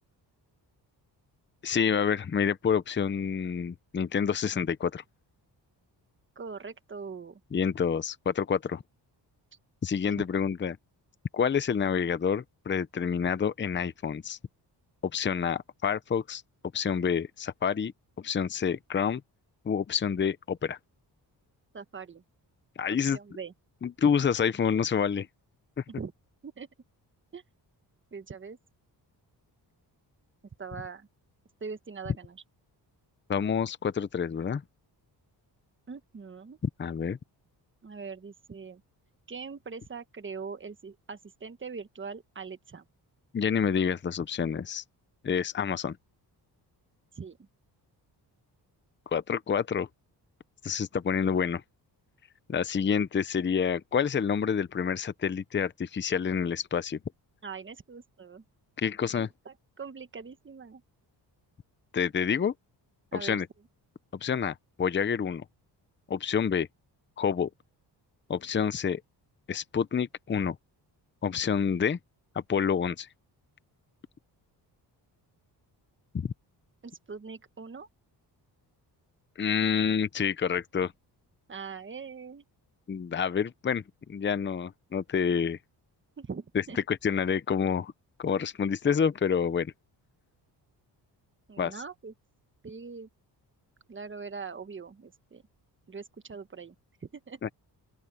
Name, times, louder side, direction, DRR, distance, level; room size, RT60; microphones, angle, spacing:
voice 1, 1.6-5.0 7.5-8.8 9.8-10.8 11.3-14.4 15.1-16.4 16.7-17.9 18.2-19.2 19.6-20.8 22.8-23.2 23.8-25.3 33.3-34.6 36.8-37.2 43.3-44.8 45.2-46.0 49.1-49.9 50.6-51.6 52.5-57.0 58.8-59.3 61.9-62.5 63.1-63.5 64.1-65.4 66.1-66.7 67.2-67.5 68.3-69.0 69.5-70.6 71.2-72.0 72.3-73.1 76.1-76.3 79.4-80.9 82.9-83.8 84.1-85.6 86.9-87.9 88.2-89.7 91.6-91.7 97.4-97.5, left 7 dB, 25° left, 0.7 m, -28 dB
voice 2, 6.3-7.4 10.0-10.3 21.7-22.2 23.0-23.5 25.9-26.1 26.4-26.7 27.3-27.4 28.1-28.6 30.6-31.1 31.6-32.4 35.9-36.6 37.8-38.8 39.3-42.9 47.1-47.4 57.4-58.4 59.1-60.8 63.1-63.4 76.8-77.9 81.5-82.4 86.2-86.8 91.5-92.1 92.6-93.1 93.9-95.4 95.9-96.7 97.0-97.4, right 5 dB, 30° right, 1.5 m, -42 dB
open air
cardioid pair, 110°, 41 cm